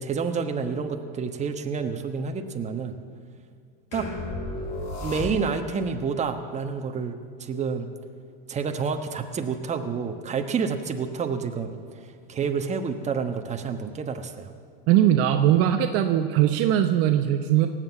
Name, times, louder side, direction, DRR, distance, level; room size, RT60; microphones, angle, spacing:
voice 1, 0.0-2.9 3.9-4.1 5.0-7.9 8.5-11.8 12.3-14.5, right 5 dB, 25° right, 5 dB, 1.2 m, -29 dB
sound 1, 3.9-5.8, left 2 dB, 60° left, 4.1 m, -33 dB
voice 2, 14.9-17.7, right 11 dB, 50° right, 7 dB, 0.8 m, -20 dB
18.0 x 7.7 x 8.1 m, 2.2 s
hypercardioid pair, 105°, 29 cm